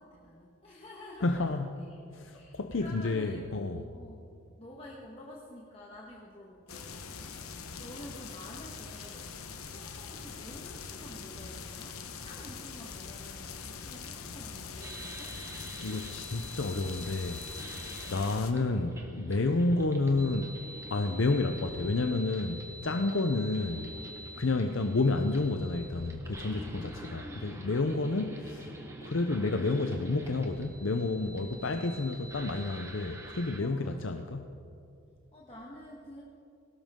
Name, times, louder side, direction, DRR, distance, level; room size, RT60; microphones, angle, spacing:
voice 1, 0.0-1.6 2.3-3.5 3.9-7.1 7.7-9.3 9.7-15.4 17.9-19.1 24.3-24.5 26.8-27.7 31.4-31.5 31.9-32.2 33.6-34.1 35.3-36.2, left 1 dB, 25° left, -4 dB, 1.5 m, -50 dB
voice 2, 1.2-1.8 2.1-3.9 15.8-17.7 18.1-20.5 20.9-23.9 24.4-28.7 29.0-34.5, left 2 dB, 65° left, 6 dB, 0.6 m, -30 dB
sound 1, 6.7-18.5, left 5 dB, 90° left, 1.1 m, -43 dB
sound 2, 14.8-33.6, right 1 dB, 15° right, 1.3 m, -46 dB
19.5 x 17.0 x 3.7 m, 2.5 s
head